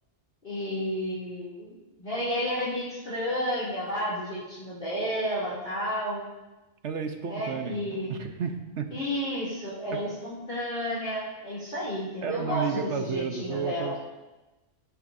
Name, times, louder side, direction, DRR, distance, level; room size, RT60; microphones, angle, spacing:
voice 1, 0.4-6.2 7.3-8.1 8.9-14.0, equal, 40° left, -10 dB, 2.9 m, -31 dB
voice 2, 6.8-7.8 8.1-8.9 9.9-10.0 12.2-13.9, right 6 dB, 65° right, 6 dB, 1.1 m, -32 dB
17.5 x 11.0 x 2.7 m, 1.1 s
omnidirectional pair, 1.4 m